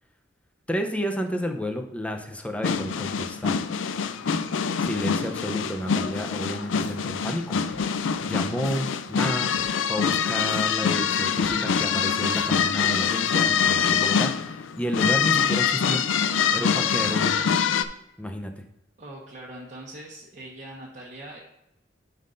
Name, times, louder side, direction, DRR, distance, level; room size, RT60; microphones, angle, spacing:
voice 1, 0.7-3.6 4.8-7.8 8.2-9.5 9.9-16.1 16.5-17.5 18.2-18.6, equal, 5° left, 4 dB, 0.7 m, -31 dB
sound 1, 2.6-17.8, left 6 dB, 80° left, 0.4 m, -24 dB
sound 2, 6.6-13.0, left 1 dB, 65° left, 0.9 m, -47 dB
voice 2, 19.0-21.4, right 1 dB, 40° right, -6 dB, 1.3 m, -42 dB
11.5 x 5.5 x 2.6 m, 0.86 s
head